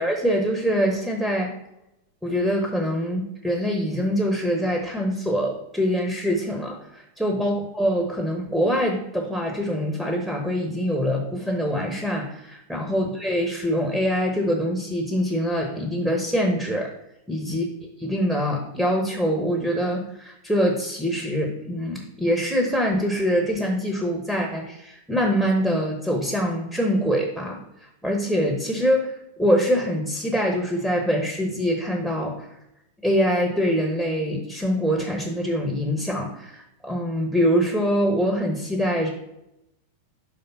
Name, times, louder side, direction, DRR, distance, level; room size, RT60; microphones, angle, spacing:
voice 1, 0.0-1.5 2.2-16.9 17.3-17.6 18.0-32.5 33.0-39.1, equal, 5° right, 1 dB, 1.2 m, -24 dB
5.7 x 3.7 x 5.4 m, 0.87 s
figure-of-eight pair, 90°, 0 cm